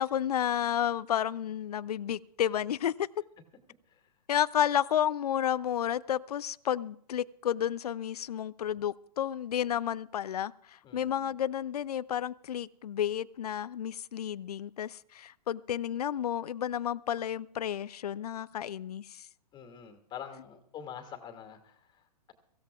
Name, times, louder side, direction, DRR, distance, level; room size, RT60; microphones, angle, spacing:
voice 1, 0.0-3.1 4.3-19.2, left 10 dB, 65° left, 19 dB, 0.5 m, -31 dB
voice 2, 10.8-11.3 19.5-22.3, left 8 dB, 20° left, 6 dB, 2.2 m, -46 dB
24.0 x 15.5 x 2.4 m, 0.67 s
figure-of-eight pair, 115°, 21 cm